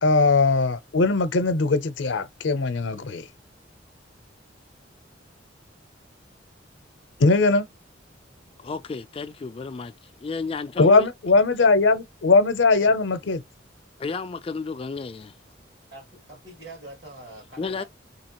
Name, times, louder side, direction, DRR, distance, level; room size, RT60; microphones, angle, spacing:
voice 1, 0.0-3.2 7.2-7.7 10.8-13.4, left 3 dB, 80° left, 0.6 m, -20 dB
voice 2, 8.6-11.1 14.0-15.4 17.6-17.8, left 4 dB, 30° left, 0.3 m, -32 dB
voice 3, 15.9-17.9, right 2 dB, 65° right, 2.2 m, -44 dB
4.0 x 2.9 x 2.9 m
head